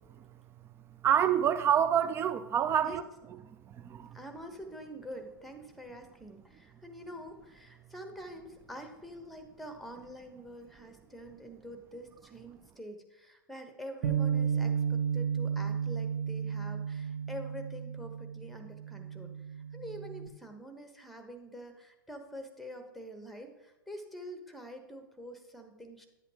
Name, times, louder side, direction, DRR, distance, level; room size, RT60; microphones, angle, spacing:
voice 1, 1.0-3.0 3.3-4.2, right 9 dB, 20° right, 0.4 m, -28 dB
voice 2, 4.1-19.3 19.7-26.1, equal, ahead, 1.1 m, -46 dB
Bass guitar, 14.0-20.3, right 7 dB, 45° right, 0.8 m, -33 dB
11.0 x 8.1 x 2.9 m
figure-of-eight pair, 100°, 11 cm